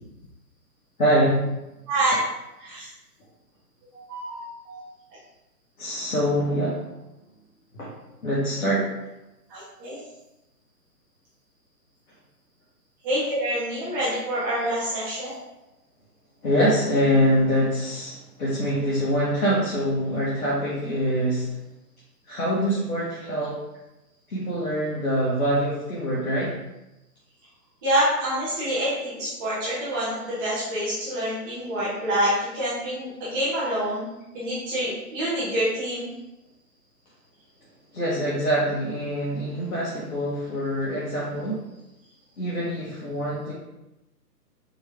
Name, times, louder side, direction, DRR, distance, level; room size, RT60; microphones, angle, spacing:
voice 1, 1.0-1.5 5.8-6.9 7.7-7.9 8.2-8.9 16.4-21.5 22.3-23.6 24.3-26.5 37.9-41.6 42.4-43.5, equal, 60° left, -7 dB, 1.5 m, -24 dB
voice 2, 3.9-4.8 9.5-10.0 13.0-15.3 27.8-34.1 34.3-36.1, right 1 dB, 15° right, -10 dB, 0.8 m, -27 dB
4.6 x 3.2 x 3.4 m, 0.96 s
figure-of-eight pair, 135°, 48 cm